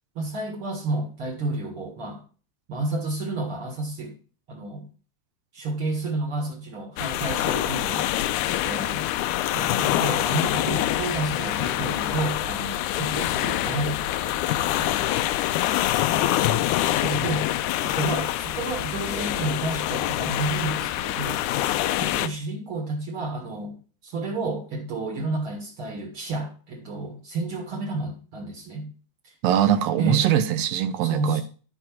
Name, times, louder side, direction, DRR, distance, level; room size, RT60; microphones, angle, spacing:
voice 1, 0.2-2.2 2.7-4.1 4.5-4.8 5.5-9.0 9.5-15.0 16.4-17.5 17.8-21.5 22.0-28.9 29.2-29.3 30.0-30.3 31.0-31.4, right 2 dB, 50° right, 2.4 m, -31 dB
sound 1, 7.0-22.3, left 14 dB, 90° left, 2.1 m, -25 dB
voice 2, 29.4-31.4, right 10 dB, 70° right, 1.8 m, -22 dB
12.5 x 4.6 x 5.9 m
omnidirectional pair, 3.4 m